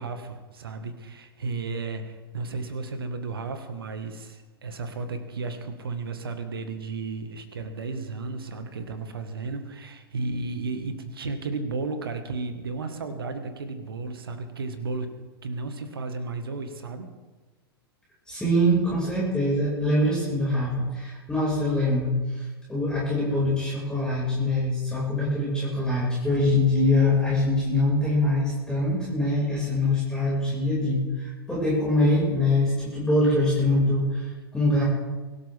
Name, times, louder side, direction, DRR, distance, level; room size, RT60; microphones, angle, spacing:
voice 1, 0.0-17.1, right 3 dB, 70° right, 8 dB, 1.8 m, -33 dB
voice 2, 18.3-34.8, left 1 dB, 5° left, -7 dB, 6.2 m, -24 dB
23.5 x 13.0 x 3.7 m, 1.3 s
figure-of-eight pair, 95°, 13 cm